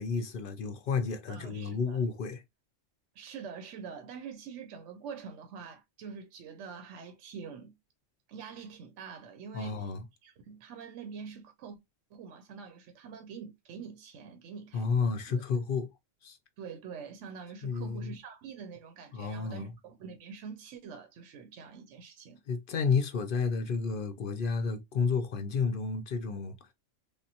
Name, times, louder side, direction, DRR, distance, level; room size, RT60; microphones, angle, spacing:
voice 1, 0.0-2.4 9.5-10.0 14.7-15.9 16.2-16.4 17.6-18.1 19.1-19.7 22.5-26.6, left 5 dB, 60° left, 0.6 m, -31 dB
voice 2, 1.3-2.0 3.2-7.8 8.3-9.9 10.2-11.8 12.1-15.4 16.6-22.4, right 6 dB, 70° right, 1.0 m, -45 dB
3.5 x 2.2 x 2.7 m
omnidirectional pair, 1.3 m